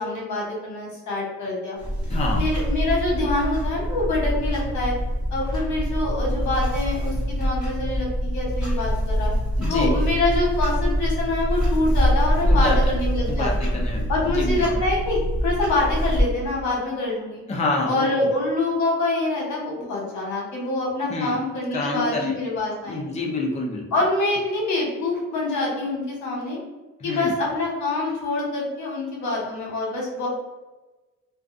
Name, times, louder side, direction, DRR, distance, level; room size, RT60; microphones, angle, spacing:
voice 1, 0.0-1.8 2.3-4.9 5.3-9.3 9.7-13.7 14.1-17.4 17.9-23.1 23.9-26.6 27.0-30.3, left 2 dB, 70° left, -3 dB, 1.1 m, -25 dB
Clock, 1.8-16.3, equal, ahead, 1.3 m, -24 dB
voice 2, 2.1-2.4 9.6-9.9 12.4-12.8 13.3-14.6 17.5-18.3 21.1-21.4 21.7-22.3 22.8-23.8 27.0-27.3, left 2 dB, 25° left, -1 dB, 0.5 m, -27 dB
2.4 x 2.3 x 2.4 m, 1.2 s
cardioid pair, 90°, 30 cm